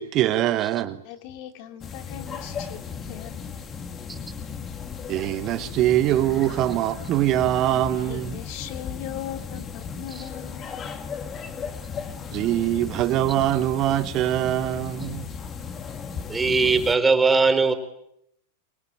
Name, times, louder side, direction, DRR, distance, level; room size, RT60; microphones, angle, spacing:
voice 1, 0.0-1.0 5.1-8.3 12.3-15.3, right 13 dB, 35° right, 1.4 m, -23 dB
voice 2, 1.0-3.5 8.0-10.8, left 11 dB, 45° left, 3.1 m, -39 dB
sound 1, 1.8-17.0, left 6 dB, 25° left, 3.1 m, -36 dB
voice 3, 16.3-17.7, right 4 dB, 15° right, 3.9 m, -20 dB
28.5 x 23.5 x 8.9 m
figure-of-eight pair, 90°, 0 cm